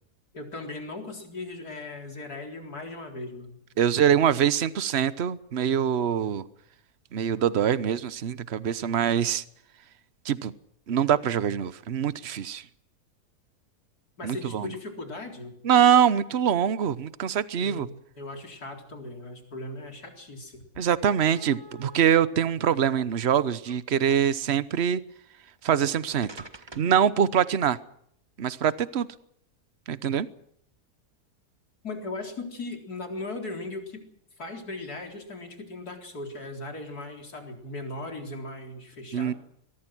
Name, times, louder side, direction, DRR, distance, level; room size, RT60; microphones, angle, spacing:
voice 1, 0.3-3.6 14.2-15.5 17.6-20.6 31.8-34.0 34.4-39.4, left 2 dB, 70° left, 4.5 m, -38 dB
voice 2, 3.8-6.4 7.1-9.4 10.2-10.5 10.9-12.7 14.2-14.7 15.6-17.9 20.8-25.0 25.6-26.4 26.7-27.8 28.4-29.1 29.9-30.3 39.1-39.3, right 8 dB, 45° right, 1.1 m, -24 dB
sound 1, 20.5-20.6 21.1-22.0 22.9-23.8 24.1-24.5 25.6-25.7 26.2-27.0, right 1 dB, 15° right, 1.4 m, -46 dB
23.0 x 21.5 x 6.2 m
omnidirectional pair, 1.7 m